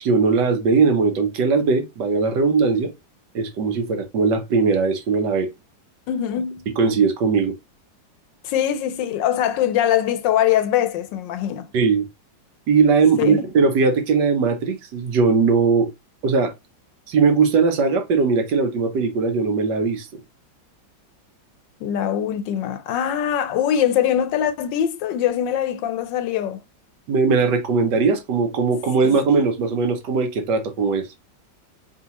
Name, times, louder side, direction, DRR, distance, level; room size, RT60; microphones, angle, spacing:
voice 1, 0.0-2.9 3.3-5.5 6.8-7.5 11.7-12.1 12.7-15.9 16.2-16.5 17.1-20.1 27.1-31.1, right 4 dB, 70° right, 1.4 m, -19 dB
voice 2, 6.1-6.7 8.4-11.7 13.2-13.4 21.8-26.6 29.0-29.2, left 10 dB, 80° left, 1.3 m, -22 dB
4.7 x 3.1 x 2.9 m
omnidirectional pair, 2.0 m